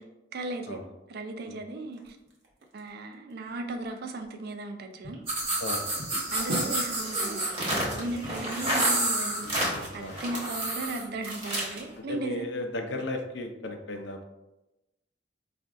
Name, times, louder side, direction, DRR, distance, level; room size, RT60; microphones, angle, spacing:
voice 1, 0.3-0.8 1.1-2.2 2.7-5.2 6.3-12.5, right 2 dB, 60° right, 5 dB, 0.4 m, -36 dB
sound 1, 1.9-4.7 5.0-9.9, equal, 80° right, 0.9 m, -42 dB
sound 2, 5.3-11.8, right 1 dB, 30° right, 1.0 m, -29 dB
voice 2, 5.6-6.0 9.4-10.2 12.0-14.2, left 1 dB, 75° left, 5 dB, 0.5 m, -36 dB
4.7 x 2.5 x 2.4 m, 0.98 s
head